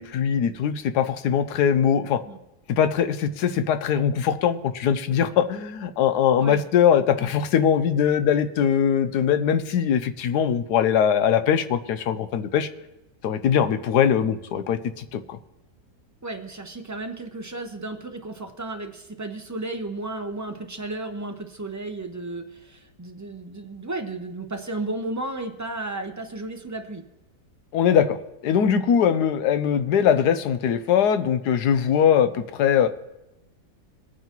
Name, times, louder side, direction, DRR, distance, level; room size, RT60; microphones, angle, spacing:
voice 1, 0.0-2.2 2.7-12.7 13.2-15.4 27.7-28.2 28.4-32.9, left 8 dB, 75° left, 11 dB, 1.2 m, -21 dB
voice 2, 16.2-27.0, right 2 dB, 25° right, 4 dB, 0.3 m, -33 dB
21.5 x 9.2 x 3.0 m, 0.97 s
omnidirectional pair, 1.8 m